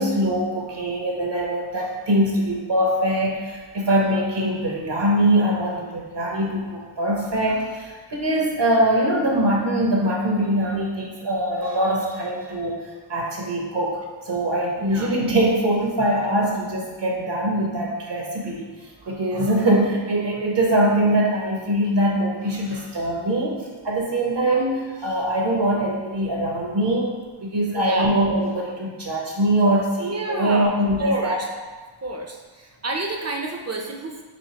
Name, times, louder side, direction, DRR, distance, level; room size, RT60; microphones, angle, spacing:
voice 1, 0.0-12.8 13.1-27.1 27.4-31.4, right 1 dB, 60° right, -1 dB, 0.8 m, -22 dB
voice 2, 14.8-15.1 27.7-28.2 30.1-30.7 31.0-31.5 32.0-34.2, right 2 dB, 35° right, 1 dB, 0.4 m, -29 dB
4.3 x 2.7 x 2.8 m, 1.4 s
wide cardioid pair, 40°, 49 cm